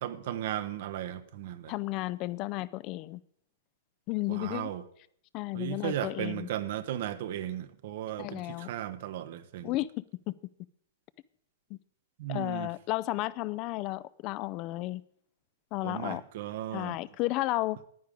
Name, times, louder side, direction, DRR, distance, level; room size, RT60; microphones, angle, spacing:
voice 1, 0.0-1.7 4.3-4.8 5.5-9.7 12.2-12.7 15.8-17.0, right 11 dB, 60° right, 0.8 m, -36 dB
voice 2, 1.7-3.2 4.1-4.7 5.3-6.5 8.2-8.7 9.6-10.3 11.7-11.8 12.3-15.0 15.7-16.2 16.7-17.8, left 18 dB, 40° left, 0.4 m, -33 dB
10.5 x 9.4 x 5.1 m
hypercardioid pair, 110°, 0 cm